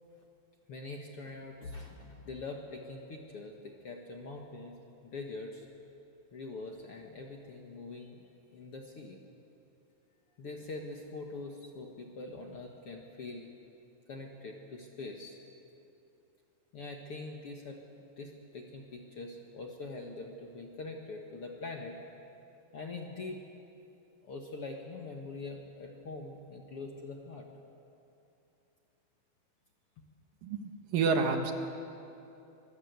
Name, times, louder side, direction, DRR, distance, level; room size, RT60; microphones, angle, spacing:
voice 1, 0.7-5.7 6.3-8.2 8.5-9.2 10.4-13.5 14.1-15.4 16.7-17.8 18.2-22.0 22.7-23.4 24.2-27.5, left 3 dB, 50° left, 1 dB, 1.8 m, -43 dB
voice 2, 30.4-31.5, right 4 dB, 70° right, 5 dB, 3.0 m, -29 dB
25.5 x 21.0 x 8.2 m, 2.8 s
omnidirectional pair, 4.3 m